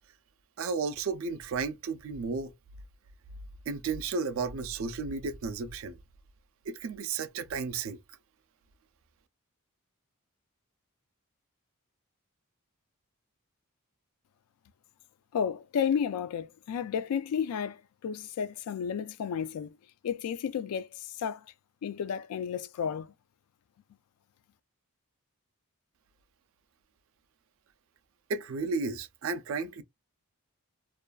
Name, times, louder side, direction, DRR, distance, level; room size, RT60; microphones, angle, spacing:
voice 1, 0.6-2.5 3.7-6.0 6.7-8.2 28.3-29.8, right 4 dB, 60° right, 0.4 m, -33 dB
voice 2, 15.3-19.8 20.0-21.5 21.8-23.1, left 7 dB, 80° left, 0.3 m, -32 dB
2.4 x 2.3 x 2.2 m
head